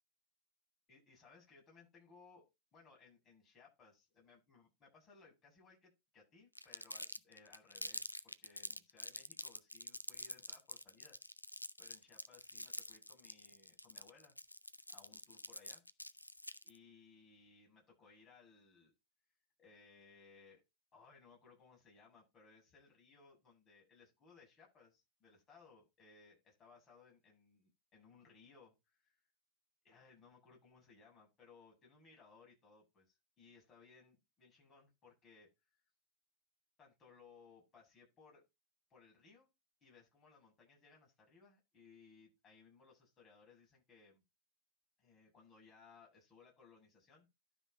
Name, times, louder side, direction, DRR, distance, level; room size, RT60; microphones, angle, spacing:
voice 1, 0.9-2.4 2.7-11.2 11.8-14.3 14.9-15.8 16.6-18.9 19.6-20.6 20.9-29.2 29.8-35.5 36.8-38.4 38.9-39.5 39.8-44.2 45.0-47.3, left 4 dB, 25° left, -1 dB, 7.7 m, -64 dB
Crumpling crinkling, 6.6-16.8, left 1 dB, 85° left, 0.5 m, -47 dB
12.0 x 5.5 x 4.3 m, 0.23 s
figure-of-eight pair, 90°, 0 cm